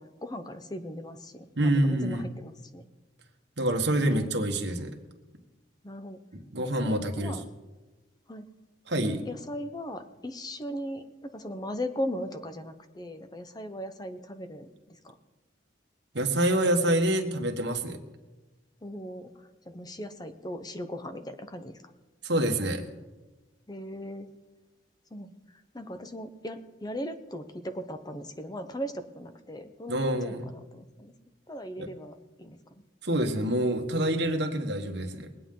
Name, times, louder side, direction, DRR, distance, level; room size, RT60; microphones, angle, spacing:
voice 1, 0.0-2.9 4.0-4.3 5.8-6.2 6.6-7.4 8.3-8.5 9.0-15.1 18.8-19.3 19.6-21.8 23.7-24.3 25.1-25.3 25.7-31.1 31.5-32.6, equal, 20° left, 9 dB, 0.9 m, -38 dB
voice 2, 1.6-2.3 3.6-5.0 6.3-7.4 8.9-9.2 16.1-18.0 22.2-22.8 29.9-30.5 31.8-31.9 33.0-35.3, right 1 dB, 65° right, 4 dB, 1.5 m, -27 dB
22.0 x 8.9 x 3.8 m, 1.2 s
head